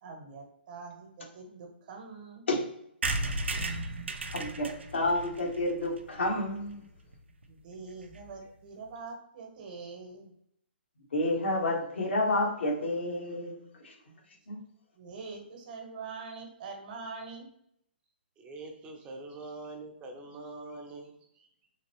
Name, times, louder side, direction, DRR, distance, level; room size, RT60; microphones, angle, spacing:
voice 1, 0.0-2.5 7.5-10.3 15.0-17.5, right 4 dB, 45° right, 3 dB, 1.0 m, -44 dB
sound 1, 3.0-6.7 7.1-7.2 7.4-7.5 7.7-7.8 8.0-8.3, right 2 dB, 90° right, 0.5 m, -35 dB
voice 2, 4.3-6.8 11.1-13.6 13.8-13.9 14.5-14.6, left 1 dB, 80° left, -1 dB, 1.5 m, -30 dB
voice 3, 18.4-21.5, right 2 dB, 20° right, 2 dB, 0.7 m, -44 dB
3.7 x 2.9 x 3.0 m, 0.72 s
hypercardioid pair, 145°, 6 cm